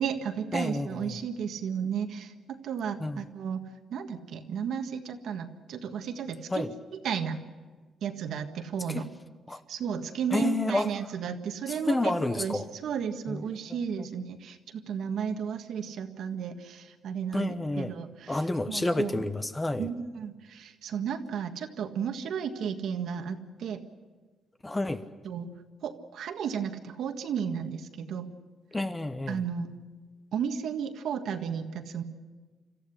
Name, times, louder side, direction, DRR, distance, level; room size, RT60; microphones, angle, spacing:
voice 1, 0.0-3.6 3.9-7.4 8.0-9.1 9.7-12.1 12.4-18.4 18.7-19.1 19.8-23.8 25.2-25.5 25.8-28.3 29.3-29.7 30.3-32.0, right 7 dB, 70° right, 7 dB, 1.7 m, -33 dB
voice 2, 0.5-1.2 3.0-3.3 6.5-6.7 8.9-9.0 9.5-9.6 10.3-10.9 11.7-12.7 13.3-14.1 17.3-18.0 18.3-19.9 24.6-25.0 28.7-29.4, left 2 dB, 15° left, 11 dB, 1.0 m, -30 dB
26.0 x 14.5 x 10.0 m, 1.4 s
cardioid pair, 110°, 0 cm